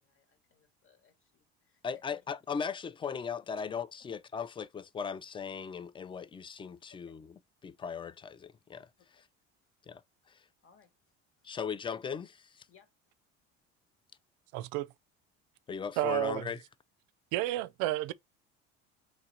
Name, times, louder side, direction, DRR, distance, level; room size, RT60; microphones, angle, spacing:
voice 1, 0.0-2.0 7.0-7.2 9.2-9.3 10.6-10.9 11.4-11.5 12.7-12.9, left 7 dB, 45° left, 1.8 m, -65 dB
voice 2, 1.8-7.3 7.6-8.9 9.1-9.3 9.9-10.0 10.3-10.4 11.4-12.7 15.7-16.6, left 6 dB, 15° left, 0.4 m, -38 dB
voice 3, 14.5-14.9 16.0-16.5 17.3-18.1, right 16 dB, 70° right, 0.5 m, -31 dB
3.7 x 3.1 x 4.2 m
supercardioid pair, 85°, 31 cm